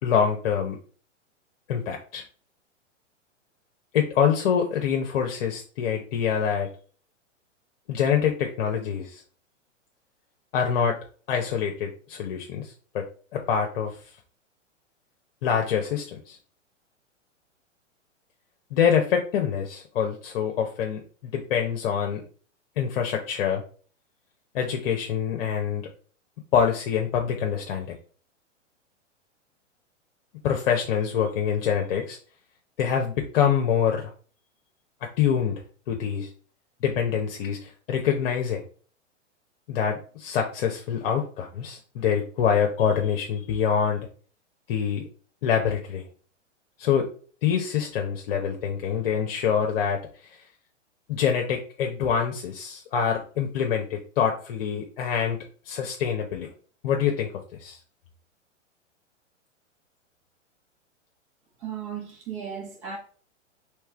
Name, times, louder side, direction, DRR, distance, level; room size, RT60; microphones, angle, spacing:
voice 1, 0.0-0.8 1.7-2.2 3.9-6.7 7.9-9.2 10.5-11.0 11.3-13.0 13.3-14.0 15.4-16.4 18.7-22.2 22.8-23.6 24.5-25.9 26.5-27.9 30.4-32.2 32.8-34.1 35.2-35.6 35.9-36.3 36.8-38.6 39.7-44.0 44.7-45.0 45.4-46.0 46.8-47.1 47.4-50.4 51.1-55.4 55.6-56.5 56.8-57.3 57.6-57.8, left 7 dB, 50° left, 0.8 m, -25 dB
voice 2, 61.6-63.0, right 7 dB, 45° right, 1.8 m, -35 dB
4.6 x 3.3 x 3.3 m
figure-of-eight pair, 105°, 37 cm